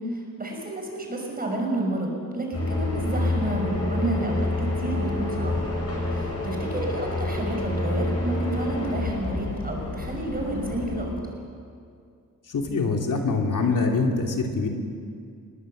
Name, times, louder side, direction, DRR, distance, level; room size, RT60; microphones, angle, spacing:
voice 1, 0.1-5.5 6.1-11.3, right 1 dB, 25° right, 1 dB, 5.5 m, -30 dB
sound 1, 2.5-11.0, left 2 dB, 45° left, 6.7 m, -28 dB
voice 2, 12.5-14.7, left 4 dB, 65° left, 2 dB, 2.8 m, -24 dB
26.5 x 21.5 x 7.8 m, 2.3 s
wide cardioid pair, 170°, 34 cm